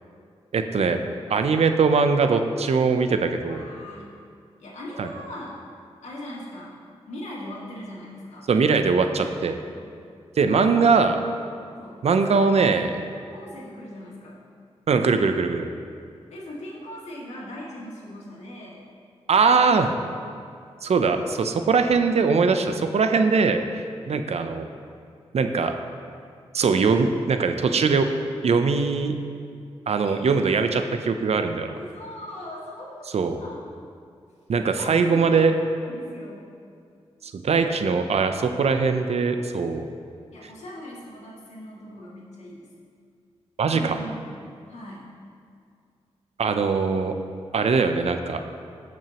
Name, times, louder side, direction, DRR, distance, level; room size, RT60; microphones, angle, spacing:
voice 1, 0.5-1.0 1.3-3.7 5.0-5.1 8.5-9.6 10.4-11.2 12.0-12.9 14.9-15.7 19.3-19.9 20.8-24.7 25.3-25.7 26.5-28.1 28.4-29.1 29.9-31.8 33.1-33.4 34.5-35.5 37.3-39.8 43.6-44.0 46.4-47.1 47.5-48.4, right 4 dB, 65° right, 7 dB, 0.6 m, -21 dB
voice 2, 3.5-4.1 4.6-5.6 6.0-6.8 7.1-8.5 9.7-9.9 10.4-10.8 11.8-12.8 13.1-14.4 16.3-18.8 22.2-22.3 30.0-30.3 31.7-33.1 33.4-33.7 34.7-36.5 40.3-42.7 43.7-44.4 44.7-45.1, left 1 dB, 75° left, -5 dB, 2.2 m, -40 dB
15.0 x 6.1 x 3.0 m, 2.3 s
cardioid pair, 50°, 12 cm